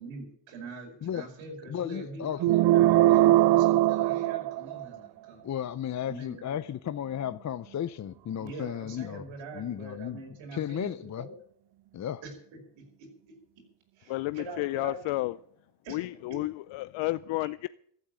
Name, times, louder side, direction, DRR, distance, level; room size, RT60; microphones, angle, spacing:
voice 1, 0.0-5.5 6.0-6.6 8.4-11.3 12.2-13.1 14.0-15.0 15.8-16.0, right 3 dB, 85° right, 5.3 m, -43 dB
voice 2, 1.7-2.5 5.4-9.2 9.5-10.2 10.5-11.3 11.9-12.2, left 10 dB, 40° left, 0.6 m, -34 dB
sound 1, 2.4-5.1, right 15 dB, 65° right, 0.5 m, -21 dB
voice 3, 14.1-15.4 15.9-17.7, left 19 dB, 80° left, 0.6 m, -31 dB
15.0 x 8.6 x 9.2 m
cardioid pair, 90°, 45 cm